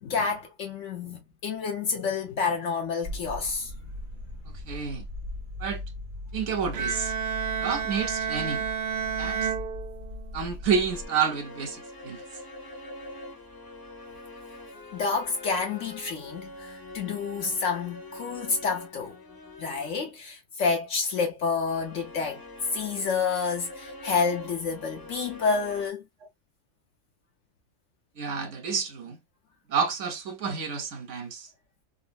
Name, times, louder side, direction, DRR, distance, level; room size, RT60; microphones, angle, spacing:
voice 1, 0.0-3.7 14.9-19.1 19.6-22.4 22.7-26.0, left 5 dB, 65° left, 1.0 m, -29 dB
sound 1, 3.0-11.1, left 1 dB, 40° right, 0.9 m, -39 dB
voice 2, 4.5-5.1 5.6-5.8 6.3-7.1 7.6-8.7 9.2-9.5 10.3-12.2 28.2-29.2 29.7-31.5, right 6 dB, 60° right, 1.1 m, -29 dB
Bowed string instrument, 6.7-10.5, right 7 dB, 80° right, 0.4 m, -31 dB
sound 2, 10.9-20.1 21.7-25.9, left 2 dB, 20° left, 0.7 m, -44 dB
3.7 x 2.0 x 2.3 m
omnidirectional pair, 1.5 m